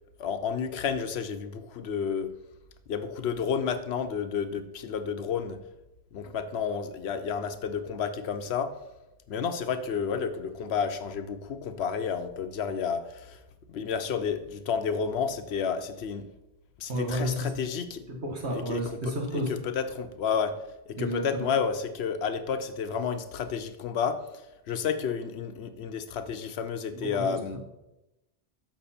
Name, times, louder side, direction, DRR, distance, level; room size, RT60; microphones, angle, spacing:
voice 1, 0.2-2.3 2.9-5.6 6.1-8.7 9.3-13.4 13.7-16.3 16.8-18.0 18.5-20.6 20.9-24.2 24.7-27.6, left 6 dB, 70° left, 9 dB, 0.9 m, -31 dB
voice 2, 16.9-17.5 18.1-19.5 20.9-21.5 26.9-27.6, equal, 75° right, 0 dB, 1.8 m, -31 dB
6.8 x 6.0 x 4.3 m, 0.93 s
omnidirectional pair, 1.1 m